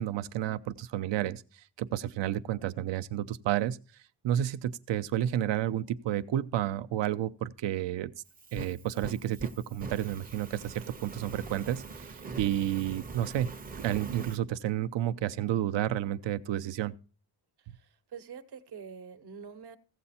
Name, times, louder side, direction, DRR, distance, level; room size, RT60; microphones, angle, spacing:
voice 1, 0.0-3.8 4.2-8.1 8.5-13.5 13.8-16.9, right 12 dB, 75° right, 0.7 m, -31 dB
Fire, 8.3-14.4, right 3 dB, 20° right, 0.6 m, -43 dB
voice 2, 17.6-19.8, right 6 dB, 60° right, 1.0 m, -46 dB
15.5 x 7.9 x 4.2 m
wide cardioid pair, 175°, 44 cm